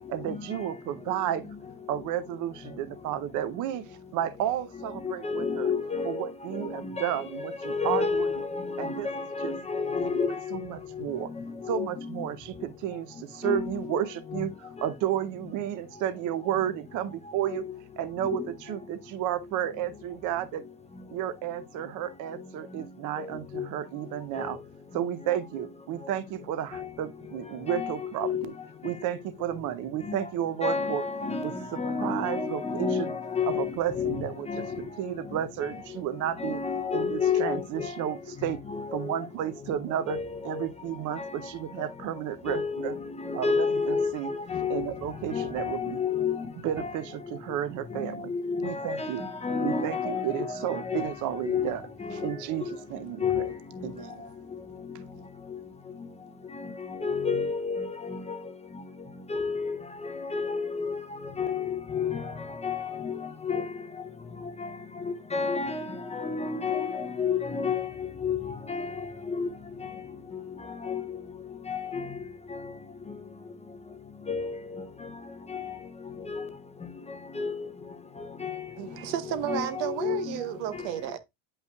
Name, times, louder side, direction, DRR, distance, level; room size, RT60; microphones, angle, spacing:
voice 1, 0.1-1.6 1.9-5.7 6.0-8.3 8.8-9.1 9.4-9.5 10.0-10.1 10.5-11.3 11.7-17.7 18.0-20.6 21.1-24.6 24.9-28.5 28.8-31.0 31.4-33.1 33.5-36.6 36.9-38.6 38.9-40.2 40.4-43.0 43.3-44.3 44.7-46.0 46.6-48.3 48.6-49.2 49.6-51.8 52.1-53.5 53.8-54.2, right 11 dB, 40° right, 0.6 m, -32 dB
voice 2, 5.0-10.4 11.4-11.5 11.7-11.9 12.2-12.3 13.4-13.8 18.2-18.4 23.2-23.3 23.6-23.7 24.4-24.5 27.7-27.9 28.2-28.4 30.6-34.2 34.5-34.7 36.4-37.9 38.7-39.1 40.1-40.7 41.2-41.3 42.5-44.8 45.3-46.5 46.8-46.9 48.3-51.1 51.4-51.7 52.0-52.3 53.2-53.5 56.6-56.7 57.0-58.4 59.3-61.0 61.4-62.3 62.6-63.2 63.5-63.7 64.6-64.7 65.0-67.9 68.2-68.4 68.7-68.9 69.3-69.5 70.8-71.0 71.7-72.0 72.5-72.6 74.3-74.8 75.5-75.6 76.3-76.5 77.3-77.7 78.4-78.6 79.5-79.7 80.0-80.4, left 5 dB, 15° left, 0.5 m, -30 dB
voice 3, 78.8-81.2, right 11 dB, 85° right, 1.1 m, -32 dB
9.3 x 5.5 x 2.3 m
cardioid pair, 150°, 48 cm